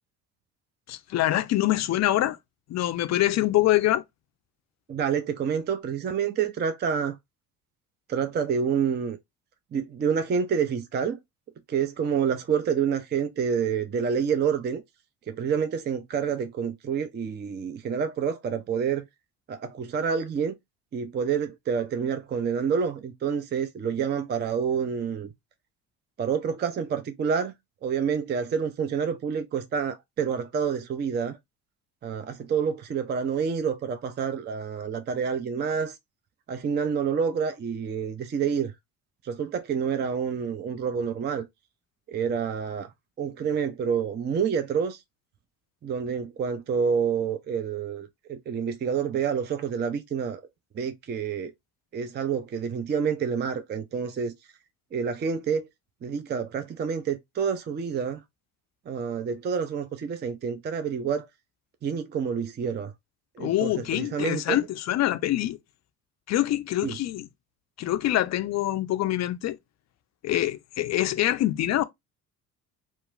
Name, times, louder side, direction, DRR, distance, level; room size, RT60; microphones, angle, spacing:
voice 1, 0.9-2.4 2.7-4.0 63.4-65.6 66.3-67.3 67.8-69.6 70.2-71.8, left 14 dB, 40° left, 0.5 m, -25 dB
voice 2, 4.9-7.2 8.1-9.2 9.7-11.2 11.7-14.8 15.3-19.0 19.5-20.6 20.9-25.3 26.2-27.5 27.8-31.4 32.0-35.9 36.5-38.7 39.2-41.5 42.1-42.9 43.2-45.0 45.8-50.4 50.7-51.5 51.9-54.3 54.9-55.7 56.0-58.2 58.9-61.3 61.8-62.9 63.4-64.6 66.8-67.0, right 6 dB, 25° right, 0.5 m, -28 dB
2.9 x 2.3 x 2.4 m
hypercardioid pair, 55°, 44 cm